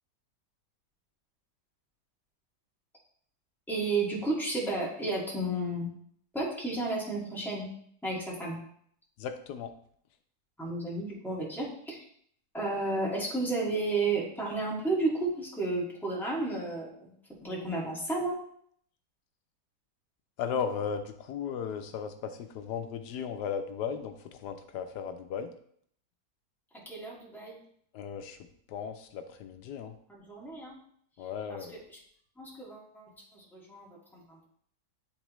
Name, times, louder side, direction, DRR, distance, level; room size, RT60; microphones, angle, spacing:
voice 1, 3.7-5.9 6.3-7.7 8.0-8.6 10.6-12.0 12.5-17.1 17.4-18.4 26.7-27.6 30.1-30.8 31.2-32.0 32.3-34.5, right 2 dB, ahead, -5 dB, 1.6 m, -33 dB
voice 2, 9.2-9.7 20.4-25.5 27.9-30.0 31.2-31.8, left 7 dB, 85° left, 8 dB, 1.2 m, -36 dB
9.9 x 3.6 x 3.0 m, 0.64 s
omnidirectional pair, 1.7 m